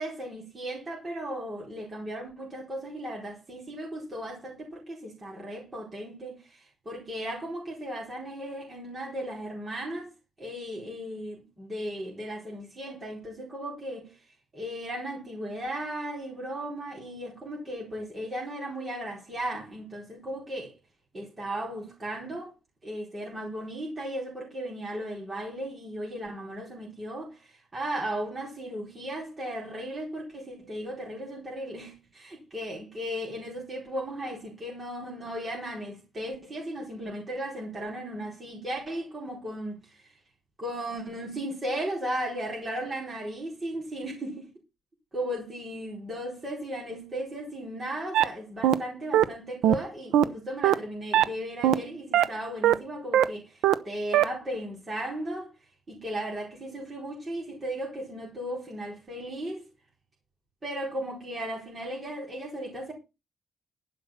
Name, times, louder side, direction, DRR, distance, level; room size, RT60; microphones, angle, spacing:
voice 1, 0.0-10.1 10.4-14.2 14.5-20.7 21.1-22.5 22.8-40.1 40.6-44.5 45.1-55.5 55.9-59.6 60.6-62.9, right 1 dB, 20° right, 4.3 m, -36 dB
sound 1, 48.1-48.2 48.6-48.7 49.1-49.2 49.6-49.7 50.1-50.2 50.6-50.7 51.1-51.2 51.6-51.7 52.1-52.2 52.6-52.7 53.1-53.2 53.6-53.7 54.1-54.2, right 11 dB, 85° right, 0.8 m, -19 dB
11.5 x 5.6 x 7.3 m
cardioid pair, 175°, 0 cm